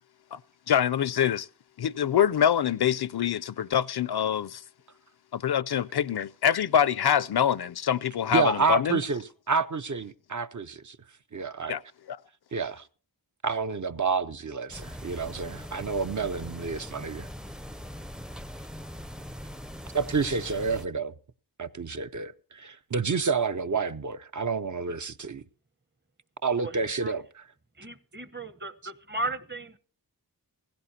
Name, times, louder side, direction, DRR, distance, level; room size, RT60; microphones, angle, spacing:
voice 1, 0.7-1.5 1.8-4.6 5.3-9.0 11.7-11.8 12.1-12.2, left 9 dB, 70° left, 0.5 m, -25 dB
voice 2, 8.3-11.0 11.3-11.8 12.5-12.8 13.4-17.3 19.9-21.1 21.6-25.4 26.4-27.2, right 4 dB, 45° right, 0.6 m, -29 dB
sound 1, 14.7-20.9, equal, ahead, 0.5 m, -41 dB
voice 3, 26.6-27.2 27.8-29.8, right 2 dB, 25° right, 1.0 m, -36 dB
17.0 x 16.0 x 2.8 m
wide cardioid pair, 85°, 40 cm